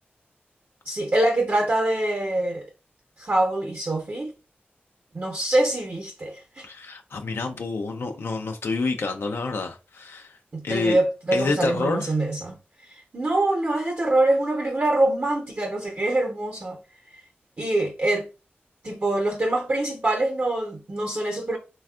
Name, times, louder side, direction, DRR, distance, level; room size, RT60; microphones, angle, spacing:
voice 1, 0.9-2.7 3.2-4.3 5.1-6.7 10.5-12.6 12.8-16.8 17.6-18.3 18.8-21.6, right 1 dB, 50° right, 0.7 m, -24 dB
voice 2, 6.6-11.0 11.3-12.1, left 3 dB, 75° left, 0.4 m, -28 dB
3.4 x 2.3 x 2.3 m
cardioid pair, 60°, 4 cm